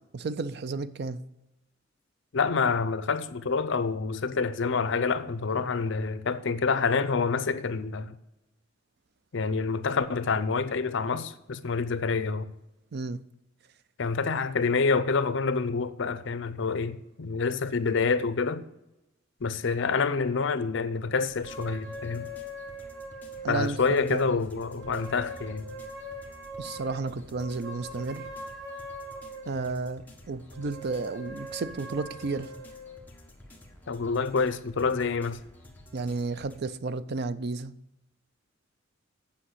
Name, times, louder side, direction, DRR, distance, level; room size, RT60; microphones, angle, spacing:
voice 1, 0.1-1.2 12.9-13.2 23.4-24.3 26.6-28.2 29.5-32.5 35.9-37.7, right 3 dB, 55° right, 0.5 m, -32 dB
voice 2, 2.3-8.1 9.3-12.5 14.0-18.6 19.4-22.3 23.5-25.7 33.9-35.4, left 4 dB, 65° left, 0.6 m, -27 dB
sound 1, 21.2-36.6, left 1 dB, 10° left, 1.3 m, -51 dB
sound 2, 21.4-24.2 24.7-29.9 30.5-33.0, equal, 85° right, 3.6 m, -42 dB
8.6 x 5.8 x 7.8 m
head